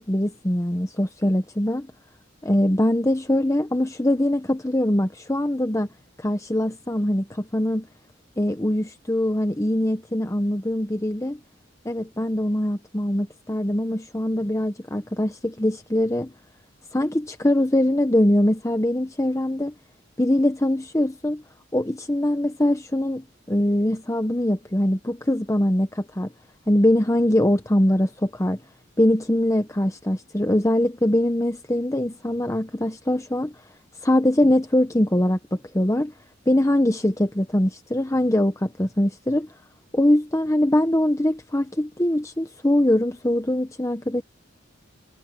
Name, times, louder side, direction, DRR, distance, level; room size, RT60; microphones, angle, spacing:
voice 1, 0.0-1.9 2.4-5.9 6.2-7.9 8.4-11.4 11.8-16.3 16.9-19.7 20.2-21.4 21.7-26.3 26.7-28.6 29.0-33.5 34.0-36.1 36.5-39.5 39.9-44.2, left 1 dB, 15° left, 1.0 m, -22 dB
head